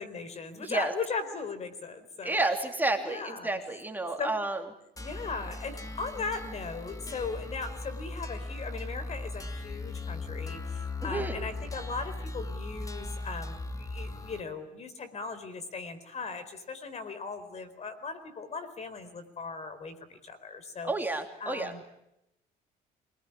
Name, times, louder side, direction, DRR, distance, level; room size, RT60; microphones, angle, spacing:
voice 1, 0.0-2.4 3.0-3.6 4.2-4.4 5.0-20.9 21.4-21.8, left 4 dB, 40° left, 11 dB, 4.4 m, -38 dB
voice 2, 0.6-0.9 2.2-4.6 11.0-11.4 20.8-21.7, right 2 dB, 10° right, 4 dB, 3.0 m, -30 dB
sound 1, 5.0-14.4, left 2 dB, 20° left, 2.7 m, -38 dB
27.0 x 20.5 x 10.0 m, 0.83 s
cardioid pair, 110°, 17 cm